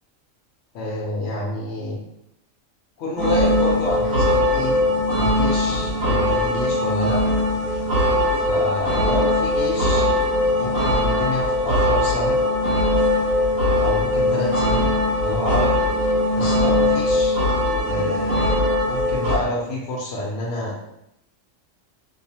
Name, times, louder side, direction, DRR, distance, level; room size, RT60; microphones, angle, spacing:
voice 1, 0.7-2.0 3.0-4.8 5.1-7.4 8.3-10.1 10.6-12.4 13.8-15.8 16.3-17.4 17.9-18.6 18.9-20.9, left 1 dB, 70° left, -3 dB, 0.9 m, -28 dB
sound 1, 3.2-19.4, left 1 dB, 90° right, 1.2 m, -20 dB
2.6 x 2.3 x 2.7 m, 0.82 s
omnidirectional pair, 1.3 m